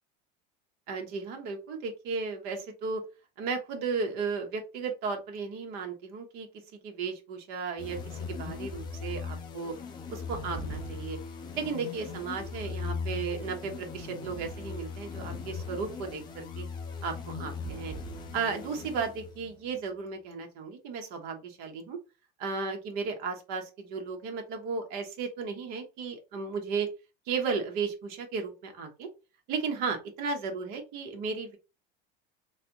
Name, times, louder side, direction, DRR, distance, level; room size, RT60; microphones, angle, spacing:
voice 1, 0.9-3.0 3.4-6.5 6.8-9.7 10.1-11.2 11.6-16.6 17.0-17.9 18.3-22.0 22.4-26.9 27.3-29.1 29.5-31.6, right 5 dB, 45° right, 4 dB, 0.9 m, -34 dB
sound 1, 7.8-19.5, left 4 dB, 20° left, 0.5 m, -39 dB
3.2 x 2.6 x 2.8 m, 0.29 s
cardioid pair, 165°, 21 cm